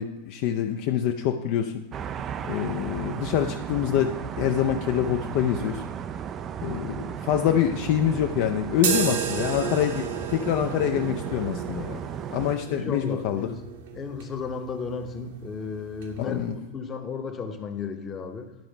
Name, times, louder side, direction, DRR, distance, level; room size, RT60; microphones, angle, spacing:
voice 1, 0.0-1.8 2.5-5.8 6.6-12.0 12.3-13.5 16.2-16.5, left 10 dB, 45° left, 0.5 m, -26 dB
sound 1, 1.9-12.6, right 8 dB, 30° right, 0.4 m, -35 dB
sound 2, 8.8-16.5, right 7 dB, 55° right, 1.1 m, -34 dB
voice 2, 12.7-13.7 13.9-18.5, left 5 dB, 25° left, 0.9 m, -34 dB
10.5 x 4.8 x 5.2 m
figure-of-eight pair, 90°, 0 cm